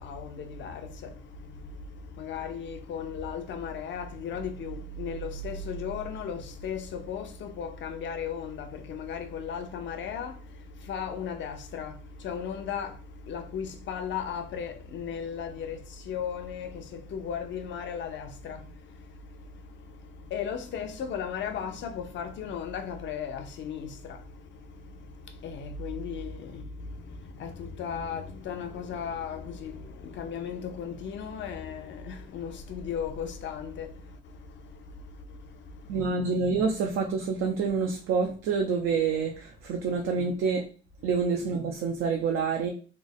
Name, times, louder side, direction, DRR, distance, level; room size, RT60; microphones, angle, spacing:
voice 1, 0.0-36.1, left 6 dB, 70° left, 0.6 m, -36 dB
voice 2, 35.9-40.6 41.0-42.7, right 5 dB, 85° right, 0.5 m, -27 dB
3.2 x 2.1 x 4.0 m
cardioid pair, 90°, 20 cm